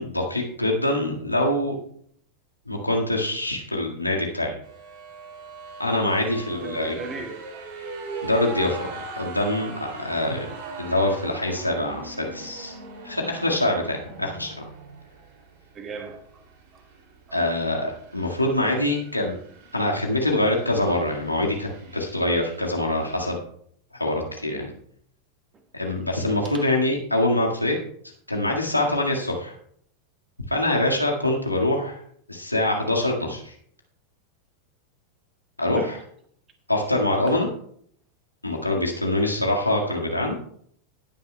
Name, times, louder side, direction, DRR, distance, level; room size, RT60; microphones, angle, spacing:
voice 1, 0.0-1.8 2.7-4.6 5.8-7.0 8.2-8.8 9.1-10.5 10.8-12.7 13.0-14.5 17.3-19.4 19.7-23.4 23.9-24.7 25.7-27.8 28.3-29.5 30.5-31.9 32.3-33.5 35.6-36.0 36.7-37.5 38.4-40.4, left 1 dB, 85° left, 0 dB, 1.8 m, -24 dB
sound 1, 4.6-23.3, right 3 dB, 45° right, 2.8 m, -40 dB
voice 2, 6.6-7.7 8.5-8.6 8.9-9.0 15.7-16.4 16.7-16.8 17.3-17.4 25.8-26.0 26.4-26.7 35.7-35.9 37.3-37.4, right 4 dB, 25° right, 5 dB, 1.6 m, -38 dB
17.5 x 9.3 x 2.3 m, 0.63 s
figure-of-eight pair, 90°, 0 cm